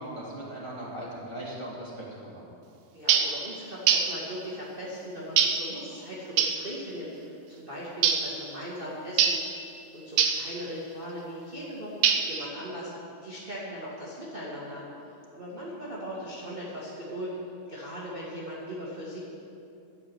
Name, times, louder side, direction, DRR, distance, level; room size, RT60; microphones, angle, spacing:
voice 1, 0.0-2.5, right 1 dB, 10° left, -7 dB, 2.3 m, -39 dB
voice 2, 2.9-9.4 9.9-12.9 13.2-17.4 17.7-19.3, equal, 25° right, -7 dB, 1.3 m, -39 dB
sound 1, 3.1-3.4 3.9-4.2 5.4-5.7 6.4-6.6 8.0-8.3 9.2-9.5 10.2-10.5 12.0-12.5, right 8 dB, 85° right, 2.7 m, -23 dB
12.5 x 7.8 x 8.7 m, 2.7 s
omnidirectional pair, 4.2 m